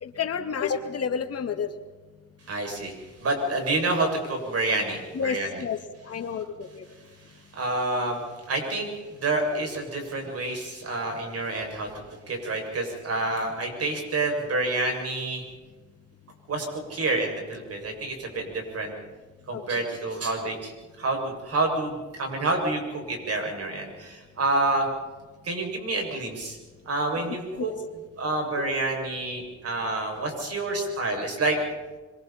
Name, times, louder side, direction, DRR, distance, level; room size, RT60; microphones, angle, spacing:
voice 1, 0.0-1.7 5.1-5.8 6.1-6.8 19.5-19.8 27.6-27.7, left 6 dB, 55° left, 5 dB, 2.3 m, -30 dB
voice 2, 2.5-3.0 3.2-5.5 7.5-8.2 8.5-8.9 9.2-11.9 12.3-15.4 16.5-18.9 19.5-20.7 21.0-24.9 25.4-26.6 26.9-27.7 28.2-31.6, right 2 dB, 50° right, 2 dB, 7.0 m, -28 dB
26.0 x 23.5 x 4.4 m, 1.3 s
cardioid pair, 90°, 30 cm